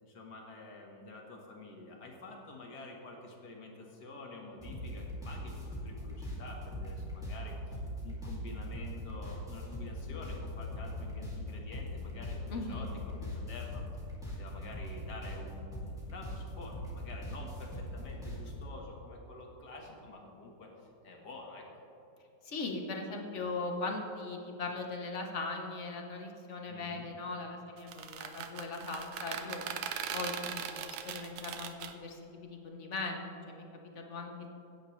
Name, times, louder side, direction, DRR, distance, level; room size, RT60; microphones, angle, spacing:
voice 1, 0.0-13.8 14.4-21.7 26.7-27.1, left 2 dB, 70° left, 0 dB, 2.2 m, -48 dB
sound 1, 4.6-18.6, left 1 dB, ahead, 2.4 m, -41 dB
voice 2, 12.5-12.9 22.4-29.6 30.1-32.2 32.5-33.6 33.9-34.5, left 3 dB, 45° left, 2 dB, 1.4 m, -39 dB
sound 2, 27.8-31.9, right 8 dB, 85° right, 1.4 m, -39 dB
16.5 x 10.0 x 3.3 m, 3.0 s
omnidirectional pair, 1.9 m